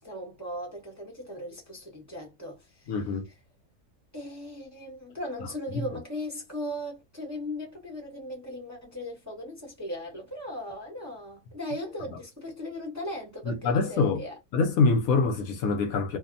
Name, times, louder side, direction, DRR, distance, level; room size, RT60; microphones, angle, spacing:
voice 1, 0.0-3.0 4.1-14.4, left 1 dB, 15° right, 0.7 m, -38 dB
voice 2, 2.9-3.3 13.5-14.2 14.5-16.2, left 4 dB, 70° left, 1.0 m, -25 dB
2.7 x 2.0 x 2.5 m
omnidirectional pair, 1.6 m